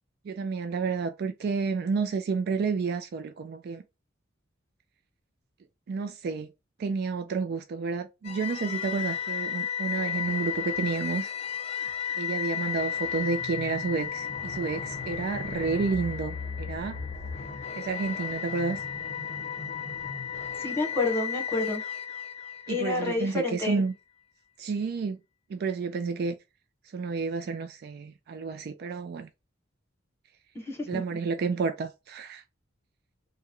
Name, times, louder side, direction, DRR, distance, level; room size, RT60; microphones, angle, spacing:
voice 1, 0.2-3.8 5.9-6.5 6.8-11.3 12.2-17.0 17.7-18.8 22.7-23.9 24.6-25.2 25.5-26.4 26.9-29.3 30.9-32.4, right 4 dB, 55° right, 0.3 m, -30 dB
sound 1, 8.2-23.4, left 8 dB, 35° left, 0.6 m, -34 dB
voice 2, 20.6-21.8 22.7-23.8 30.5-31.0, left 3 dB, 15° left, 1.2 m, -29 dB
3.3 x 2.1 x 3.6 m
head